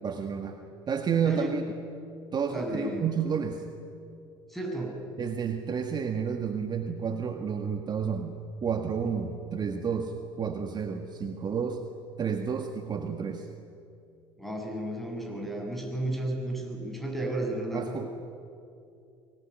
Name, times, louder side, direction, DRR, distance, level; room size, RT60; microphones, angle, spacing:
voice 1, 0.0-0.6 0.9-1.6 2.3-3.6 5.2-8.4 8.6-11.8 12.2-13.5 17.7-18.1, right 6 dB, 35° right, 5 dB, 1.8 m, -30 dB
voice 2, 1.2-1.6 2.5-3.1 4.5-5.0 14.4-17.9, right 1 dB, ahead, 2 dB, 7.6 m, -33 dB
24.0 x 19.0 x 9.7 m, 2.5 s
hypercardioid pair, 70°, 12 cm